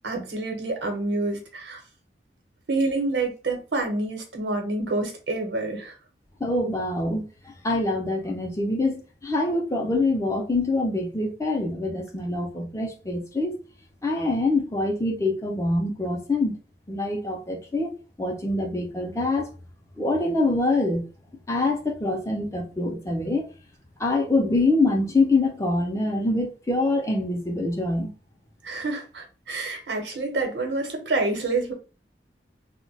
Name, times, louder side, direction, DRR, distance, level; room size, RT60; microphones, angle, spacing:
voice 1, 0.0-1.8 2.7-6.0 28.6-31.7, right 2 dB, 85° right, 0.9 m, -27 dB
voice 2, 6.4-13.6 14.0-16.6 16.9-19.5 20.0-21.1 21.5-23.5 24.0-28.1, left 2 dB, 15° left, 0.4 m, -25 dB
2.2 x 2.1 x 3.8 m
head